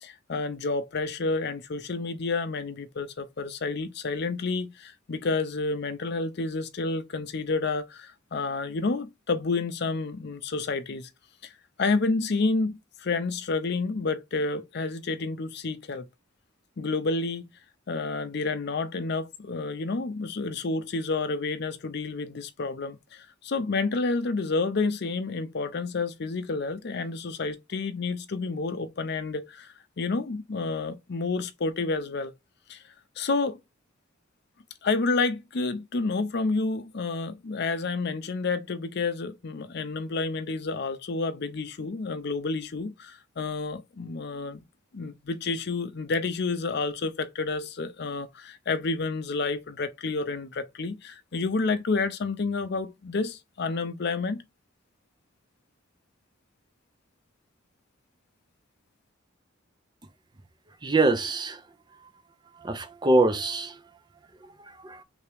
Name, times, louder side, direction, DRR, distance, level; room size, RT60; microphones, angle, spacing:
voice 1, 0.0-11.1 11.4-11.5 11.8-16.1 16.8-17.5 17.9-32.3 32.7-32.8 33.2-33.6 34.8-44.6 44.9-54.4, left 3 dB, 55° left, 0.5 m, -29 dB
voice 2, 60.8-61.6 62.6-63.8 64.4-65.0, right 2 dB, 20° right, 0.5 m, -25 dB
3.4 x 2.8 x 3.3 m
head